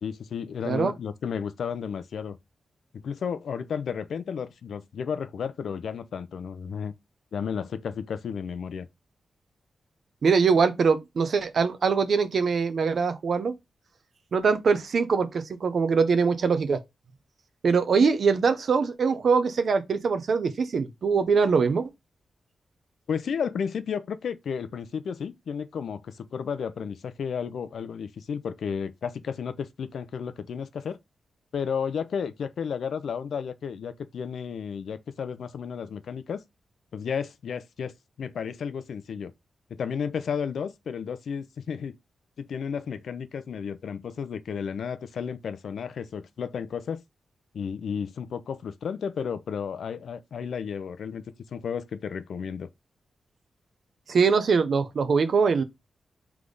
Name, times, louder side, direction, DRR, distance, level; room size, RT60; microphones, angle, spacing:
voice 1, 0.0-2.4 2.9-6.9 7.3-8.9 18.0-18.1 23.1-31.0 31.5-36.4 36.9-39.3 39.7-42.0 42.4-47.0 47.5-51.2 51.5-52.7, left 7 dB, 70° left, 0.5 m, -33 dB
voice 2, 10.2-13.5 14.3-16.8 17.6-21.9 54.1-55.6, right 5 dB, 50° right, 0.7 m, -23 dB
3.5 x 3.2 x 3.8 m
wide cardioid pair, 170°, 0 cm